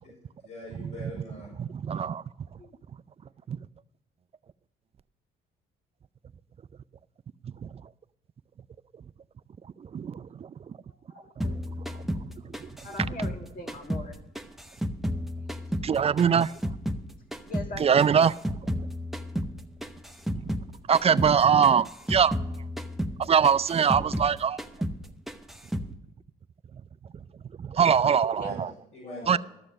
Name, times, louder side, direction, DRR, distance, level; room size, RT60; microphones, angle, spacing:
voice 1, 0.0-1.5 28.3-29.4, left 1 dB, 70° left, -5 dB, 4.6 m, -43 dB
voice 2, 1.6-2.2 3.5-3.6 7.4-7.7 9.8-10.5 12.0-12.1 12.6-12.7 15.8-16.5 17.8-18.4 20.4-20.5 20.9-22.3 23.2-24.6 27.6-28.7 29.3-29.4, right 7 dB, 30° right, 16 dB, 0.4 m, -23 dB
voice 3, 10.9-11.7 12.8-14.2 17.5-18.3 28.4-28.5 29.0-29.4, left 2 dB, 40° left, 4 dB, 1.7 m, -42 dB
sound 1, 11.4-14.1 14.4-17.1 17.3-20.7 20.9-21.4 21.6-24.3 24.6-25.0 25.3-25.9, equal, ahead, 0.8 m, -32 dB
13.0 x 6.8 x 6.4 m, 0.84 s
supercardioid pair, 70°, 21 cm